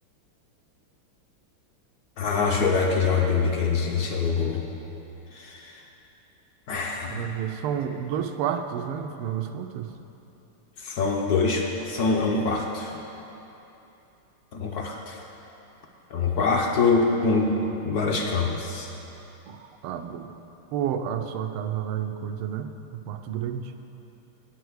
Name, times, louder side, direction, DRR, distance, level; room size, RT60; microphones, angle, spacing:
voice 1, 2.2-4.6 5.3-5.8 6.7-7.3 10.8-13.0 14.5-15.2 16.1-18.9, left 4 dB, 70° left, 1 dB, 0.9 m, -24 dB
voice 2, 7.1-9.9 19.5-20.3 20.7-23.7, right 9 dB, 85° right, 7 dB, 1.5 m, -30 dB
8.6 x 5.8 x 7.9 m, 2.9 s
omnidirectional pair, 2.4 m